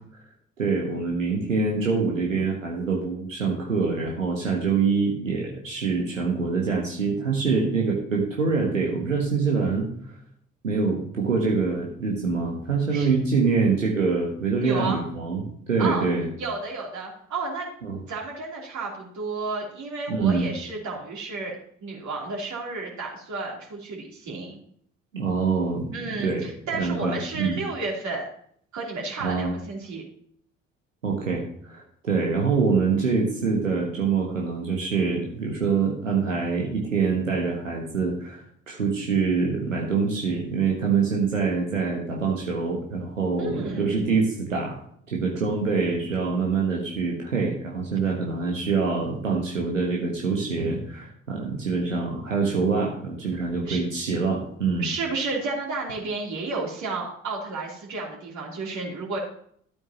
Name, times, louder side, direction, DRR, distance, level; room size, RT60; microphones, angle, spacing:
voice 1, 0.6-10.2 10.6-16.3 17.8-18.0 20.1-20.5 25.1-25.9 26.2-26.5 26.7-27.6 29.2-29.5 31.0-44.8 45.1-54.9, right 4 dB, 85° right, -1 dB, 1.3 m, -25 dB
voice 2, 14.6-15.0 15.8-16.0 16.4-17.7 18.1-21.6 21.8-24.6 25.9-28.3 28.7-30.0 43.4-43.9 53.7-53.8 54.8-59.2, right 3 dB, 50° right, -2 dB, 3.3 m, -32 dB
12.5 x 8.5 x 2.9 m, 0.63 s
figure-of-eight pair, 50°, 38 cm